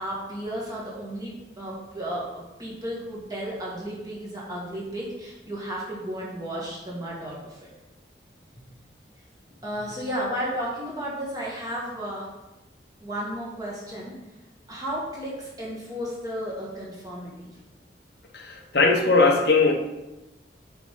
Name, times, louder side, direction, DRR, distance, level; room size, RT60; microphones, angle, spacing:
voice 1, 0.0-7.7 9.6-12.3 13.0-14.1 14.7-17.5, equal, 20° right, -5 dB, 2.0 m, -33 dB
voice 2, 18.3-19.7, left 3 dB, 65° left, 2 dB, 0.8 m, -19 dB
6.4 x 4.1 x 5.4 m, 1.0 s
head